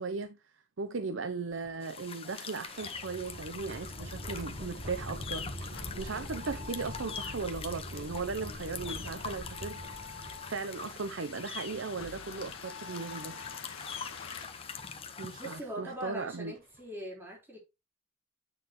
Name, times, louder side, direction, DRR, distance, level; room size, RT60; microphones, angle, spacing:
voice 1, 0.0-5.5 6.0-9.8 10.1-13.4 15.2-16.5, right 4 dB, 70° right, 0.7 m, -37 dB
sound 1, 1.5-10.8 11.7-11.8 13.3-13.5 14.2-14.4 16.0-16.1 16.6-16.8, equal, 50° right, 4.9 m, -44 dB
sound 2, 1.8-15.6, left 6 dB, 30° left, 1.1 m, -44 dB
sound 3, 4.4-15.8, left 5 dB, 85° left, 1.4 m, -49 dB
voice 2, 15.4-17.6, equal, 10° right, 4.3 m, -41 dB
9.3 x 6.5 x 3.1 m
head